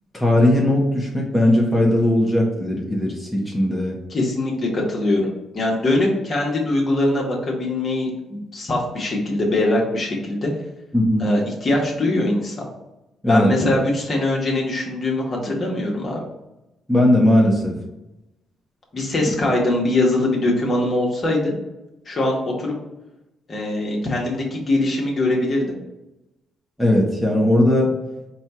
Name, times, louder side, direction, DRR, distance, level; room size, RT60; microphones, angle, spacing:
voice 1, 0.1-4.0 10.9-11.3 13.2-13.5 16.9-17.8 26.8-28.0, left 1 dB, 5° left, -3 dB, 0.9 m, -18 dB
voice 2, 4.1-10.5 11.2-12.7 13.3-16.2 18.9-21.5 22.0-22.8 23.5-25.8, left 2 dB, 40° left, -2 dB, 1.3 m, -22 dB
4.3 x 2.4 x 4.3 m, 0.95 s
cardioid pair, 90°, 0 cm